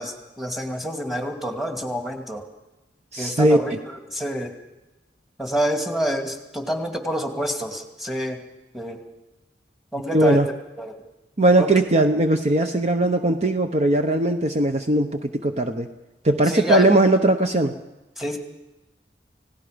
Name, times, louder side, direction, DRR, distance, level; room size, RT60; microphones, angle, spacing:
voice 1, 0.0-2.4 3.2-4.5 5.4-8.4 8.7-9.0 9.9-10.4 10.8-11.0 11.6-11.7 16.5-16.9 18.2-18.4, equal, ahead, 4 dB, 2.4 m, -27 dB
voice 2, 3.1-3.8 10.1-10.5 11.4-15.9 16.2-17.7, right 1 dB, 40° right, 6 dB, 1.0 m, -19 dB
30.0 x 17.5 x 5.2 m, 1.0 s
head